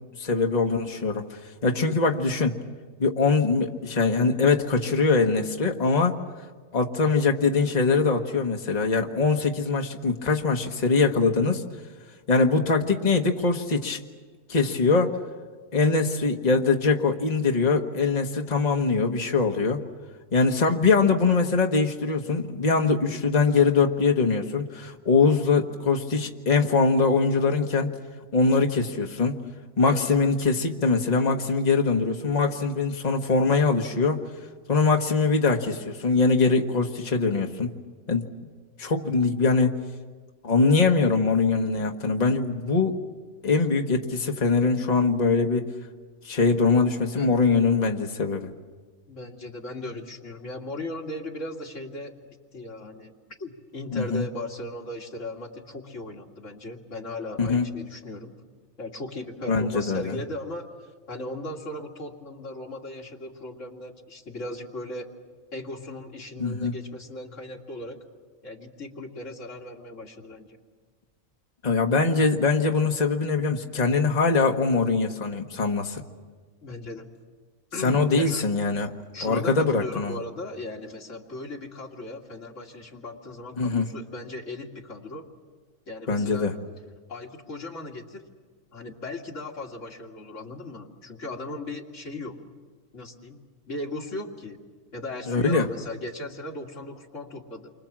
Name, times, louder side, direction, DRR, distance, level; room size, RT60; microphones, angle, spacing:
voice 1, 0.2-2.6 3.0-6.2 6.7-11.6 12.3-14.0 14.5-15.1 15.7-19.8 20.3-27.9 28.3-29.4 29.8-34.2 34.7-37.7 38.1-38.3 38.8-39.8 40.4-43.0 43.4-45.7 46.2-48.5 53.9-54.2 57.4-57.6 59.5-60.2 66.4-66.7 71.6-76.0 77.8-78.9 79.2-80.2 83.6-83.8 86.1-86.5 95.3-95.7, left 4 dB, 30° left, 3 dB, 1.4 m, -22 dB
voice 2, 49.1-52.1 52.5-58.3 58.8-60.7 61.1-65.1 65.5-68.0 68.4-70.6 76.6-77.1 77.7-78.5 79.1-85.3 85.9-86.5 87.1-88.3 88.7-92.4 92.9-93.4 93.7-94.6 94.9-97.7, left 2 dB, 65° left, 0 dB, 2.7 m, -37 dB
28.5 x 24.5 x 7.4 m, 1.4 s
omnidirectional pair, 1.4 m